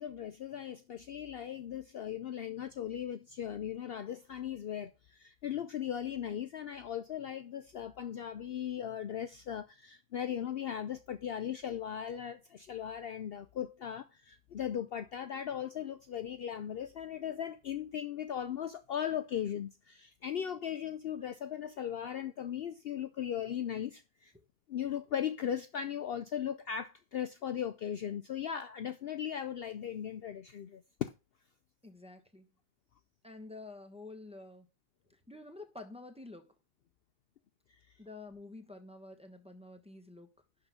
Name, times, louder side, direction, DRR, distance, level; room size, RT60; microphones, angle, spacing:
voice 1, 0.0-24.3 24.7-31.1, left 9 dB, 75° left, 0.5 m, -38 dB
voice 2, 31.8-32.5 33.2-34.7 35.1-36.5 38.0-40.3, left 2 dB, 5° right, 1.1 m, -49 dB
11.0 x 3.9 x 5.9 m
omnidirectional pair, 1.7 m